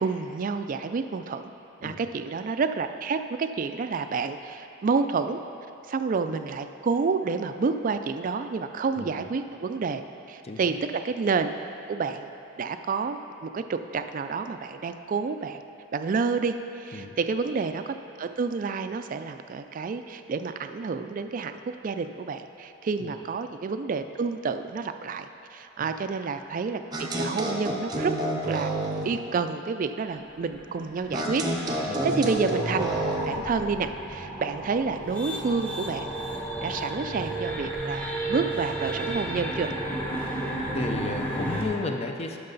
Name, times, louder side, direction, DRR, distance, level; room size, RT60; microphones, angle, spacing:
voice 1, 0.0-1.5 1.8-5.4 5.9-10.0 10.3-11.5 11.9-12.3 12.6-15.6 15.9-28.1 28.4-28.7 29.0-32.9 33.3-36.1 36.6-39.7, right 4 dB, 40° right, 9 dB, 0.3 m, -29 dB
voice 2, 10.4-10.8 16.9-17.2 23.0-23.1 25.8-25.9 31.8-32.2 40.7-42.4, left 3 dB, 30° left, 4 dB, 0.5 m, -34 dB
sound 1, 26.9-29.2 31.1-33.4, right 1 dB, 20° right, 0.7 m, -29 dB
sound 2, 30.1-41.7, right 1 dB, 5° left, 0.9 m, -33 dB
11.0 x 5.9 x 3.9 m, 2.8 s
head